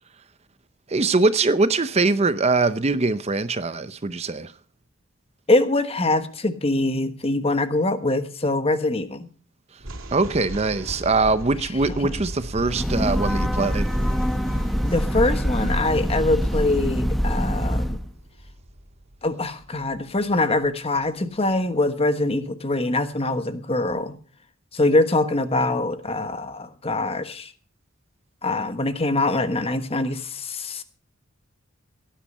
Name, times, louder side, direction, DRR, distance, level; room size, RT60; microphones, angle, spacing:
voice 1, 0.9-4.5 9.7-9.8 10.1-13.9, right 3 dB, 30° right, 0.6 m, -22 dB
voice 2, 5.5-9.3 14.8-18.0 19.2-24.2 24.7-27.5 28.4-30.8, left 2 dB, 30° left, 1.2 m, -23 dB
sound 1, 9.8-21.1, right 1 dB, 70° right, 2.7 m, -39 dB
Breathing / Train, 12.5-18.1, equal, ahead, 0.8 m, -24 dB
17.5 x 10.0 x 5.4 m
head